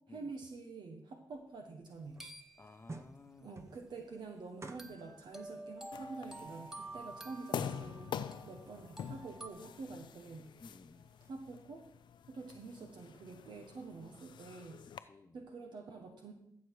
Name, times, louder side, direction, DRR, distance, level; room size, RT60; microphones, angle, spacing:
voice 1, 0.1-2.2 3.4-10.5 11.3-11.8 12.3-14.8 15.3-16.3, right 3 dB, 70° right, 3 dB, 1.2 m, -47 dB
sound 1, 1.3-11.6, right 3 dB, 35° right, 0.9 m, -57 dB
sound 2, 2.2-2.9 4.8-9.5, right 2 dB, 5° right, 1.1 m, -50 dB
voice 2, 2.6-3.6 9.9-10.0 10.6-11.1 15.0-15.4, left 3 dB, 30° left, 10 dB, 0.8 m, -56 dB
sound 3, 5.9-15.0, left 8 dB, 75° left, 0.5 m, -46 dB
14.5 x 6.4 x 4.8 m, 0.75 s
cardioid pair, 70°, 8 cm